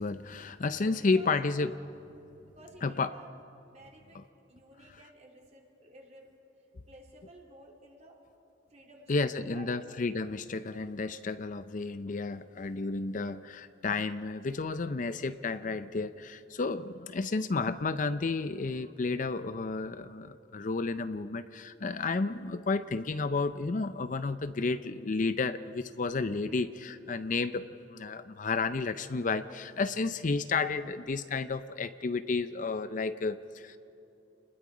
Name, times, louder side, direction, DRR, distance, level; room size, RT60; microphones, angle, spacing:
voice 1, 0.0-1.7 2.8-3.1 9.1-33.8, left 3 dB, 45° left, 12 dB, 0.5 m, -32 dB
voice 2, 0.7-1.3 2.4-3.3 3.6-4.2 4.5-6.3 6.9-8.2 8.7-9.7, right 1 dB, 40° right, -1 dB, 3.5 m, -54 dB
30.0 x 20.5 x 5.0 m, 2.8 s
head